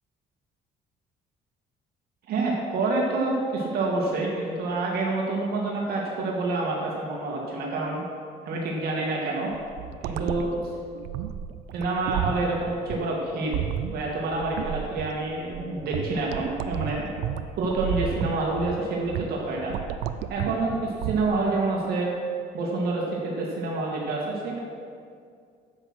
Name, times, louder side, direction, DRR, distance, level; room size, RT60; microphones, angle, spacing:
voice 1, 2.3-8.1 8.5-9.5 10.0-10.6 11.7-13.6 13.9-17.1 17.6-19.7 20.3-22.1 22.5-24.6, right 2 dB, 65° right, -2 dB, 1.9 m, -27 dB
sound 1, 9.5-21.4, right 10 dB, 90° right, 0.5 m, -32 dB
8.2 x 8.0 x 6.2 m, 2.2 s
cardioid pair, 110°, 17 cm